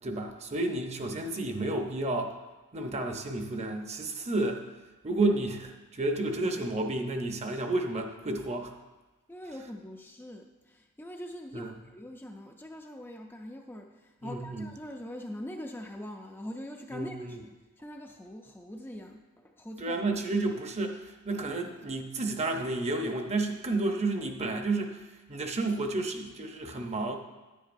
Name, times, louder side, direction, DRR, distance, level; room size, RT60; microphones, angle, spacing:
voice 1, 0.0-2.3 2.7-4.6 5.0-8.7 11.5-11.7 14.2-14.7 16.9-17.4 19.8-27.2, right 2 dB, 30° right, 4 dB, 0.8 m, -31 dB
voice 2, 9.3-20.0, equal, 10° left, 2 dB, 0.4 m, -43 dB
10.0 x 9.8 x 2.6 m, 1.2 s
head